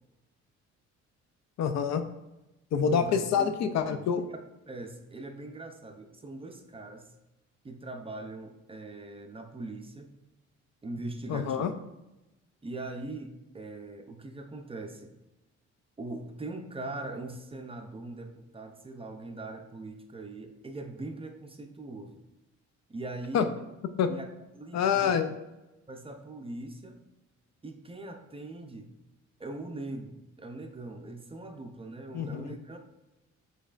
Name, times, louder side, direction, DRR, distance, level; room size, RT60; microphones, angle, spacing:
voice 1, 1.6-2.0 2.7-4.3 11.3-11.7 23.3-23.5 24.0-24.1 24.7-25.3 32.1-32.5, left 7 dB, 60° left, 9 dB, 0.5 m, -26 dB
voice 2, 3.3-3.7 4.3-4.4 4.7-7.1 7.6-10.1 10.8-11.7 12.6-15.1 16.0-22.2 22.9-23.5 24.1-24.3 24.5-25.3 25.9-27.0 27.6-28.9 29.4-32.8, right 2 dB, 20° right, 5 dB, 0.5 m, -41 dB
5.2 x 3.9 x 2.5 m, 0.99 s
cardioid pair, 90°, 30 cm